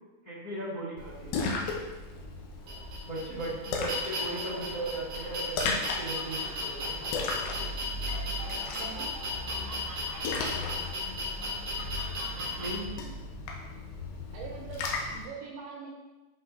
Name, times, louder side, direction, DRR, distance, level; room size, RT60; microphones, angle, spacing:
voice 1, 0.2-1.5 3.0-7.0 11.5-11.6 12.3-12.9, right 2 dB, 35° left, -10 dB, 1.5 m, -37 dB
Splash splatter, 1.0-15.3, left 3 dB, 90° left, 3.0 m, -36 dB
sound 1, 2.7-12.7, equal, 50° right, 2.2 m, -36 dB
sound 2, 6.3-11.3, left 3 dB, 70° left, 2.1 m, -51 dB
voice 2, 8.7-9.2 14.3-15.9, right 6 dB, 75° right, -2 dB, 2.6 m, -43 dB
8.1 x 5.6 x 2.6 m, 1.2 s
omnidirectional pair, 4.9 m